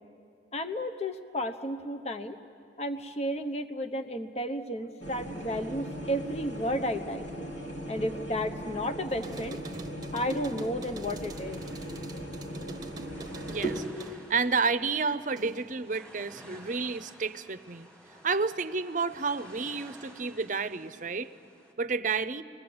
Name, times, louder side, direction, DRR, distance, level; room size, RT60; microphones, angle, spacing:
voice 1, 0.5-2.4 2.8-7.3 7.9-9.6 10.1-11.6, equal, 35° left, 8 dB, 0.9 m, -32 dB
sound 1, 5.0-13.8, right 1 dB, 80° left, 3.7 m, -38 dB
sound 2, 9.1-15.8 16.2-17.0, right 2 dB, 20° right, 1.0 m, -47 dB
sound 3, 11.1-21.7, right 1 dB, 5° left, 3.0 m, -53 dB
voice 2, 13.5-17.9 18.2-21.3 21.8-22.4, right 4 dB, 45° right, 13 dB, 0.7 m, -30 dB
28.5 x 20.5 x 7.9 m, 2.6 s
head